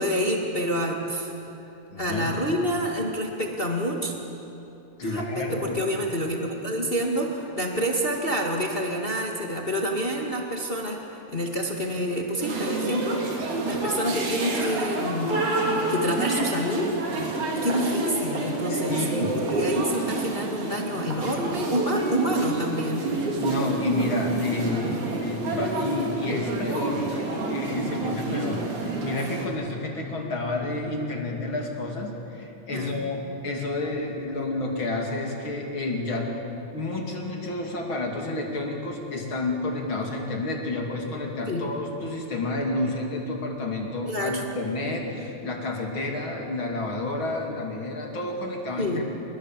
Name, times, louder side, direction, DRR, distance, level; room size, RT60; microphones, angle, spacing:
voice 1, 0.0-1.3 1.9-4.1 5.0-15.4 15.9-16.9 17.6-23.1 32.7-33.0 41.5-41.7 44.1-44.4 48.8-49.0, equal, 20° left, 0 dB, 1.6 m, -28 dB
voice 2, 1.9-2.4 5.0-5.8 18.7-19.4 23.4-36.3 36.7-49.1, left 2 dB, 40° left, 1 dB, 3.3 m, -30 dB
sound 1, 12.4-29.5, right 2 dB, 60° right, 4.2 m, -29 dB
30.0 x 21.0 x 7.5 m, 2.9 s
omnidirectional pair, 3.9 m